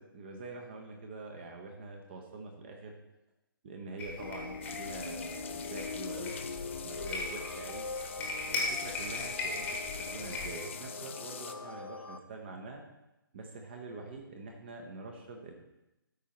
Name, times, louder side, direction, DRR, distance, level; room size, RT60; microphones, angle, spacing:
voice 1, 0.0-2.9 3.6-6.4 6.8-7.9 8.4-12.8 13.3-15.5, right 3 dB, 30° right, 2 dB, 0.8 m, -45 dB
sound 1, 4.0-10.6, left 3 dB, 10° left, 1.1 m, -39 dB
sound 2, 4.2-12.2, left 3 dB, 85° left, 0.6 m, -42 dB
sound 3, 4.6-11.5, left 7 dB, 35° left, 0.4 m, -46 dB
13.0 x 4.5 x 3.0 m, 0.95 s
figure-of-eight pair, 140°, 12 cm